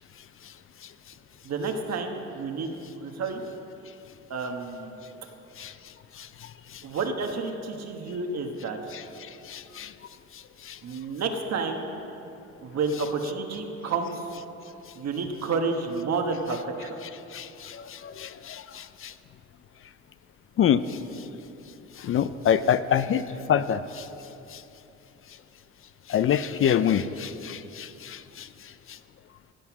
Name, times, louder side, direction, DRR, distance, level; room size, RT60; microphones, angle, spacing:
voice 1, 1.4-2.7 3.0-3.4 4.3-5.0 6.8-8.8 10.8-11.9 12.6-14.1 14.9-17.0, right 4 dB, 60° right, 4 dB, 1.2 m, -30 dB
voice 2, 9.5-9.9 17.3-18.8 20.6-20.8 22.0-23.2 23.5-23.8 26.1-28.2, left 9 dB, 45° left, 13 dB, 0.4 m, -25 dB
16.0 x 5.7 x 6.0 m, 2.9 s
cardioid pair, 90°, 30 cm